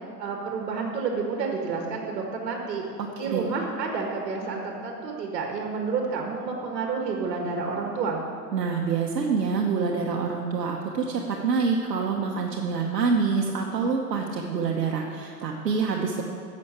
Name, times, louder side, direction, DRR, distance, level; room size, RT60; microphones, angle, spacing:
voice 1, 0.2-2.9 3.2-8.2, right 4 dB, 70° right, 1 dB, 1.8 m, -30 dB
voice 2, 8.5-16.2, right 5 dB, 90° right, 0 dB, 1.1 m, -26 dB
8.5 x 7.3 x 8.3 m, 2.4 s
hypercardioid pair, 115°, 48 cm